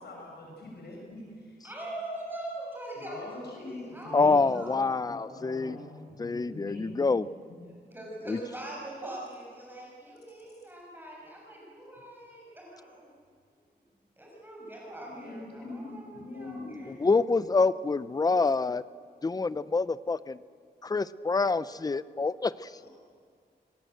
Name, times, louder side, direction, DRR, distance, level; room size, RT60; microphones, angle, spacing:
voice 1, 0.0-1.6 2.9-4.4 5.0-7.0 7.5-7.7 15.1-16.9 22.7-22.9, left 2 dB, 75° left, -1 dB, 6.2 m, -43 dB
voice 2, 1.6-4.9 7.9-13.1 14.2-16.9, right 1 dB, 10° right, -4 dB, 6.8 m, -42 dB
voice 3, 4.1-5.8 6.2-7.3 8.3-8.4 17.0-18.8 19.2-20.4 20.8-22.7, left 4 dB, 20° left, 16 dB, 0.6 m, -26 dB
27.5 x 20.5 x 7.9 m, 2.2 s
wide cardioid pair, 130°, 17 cm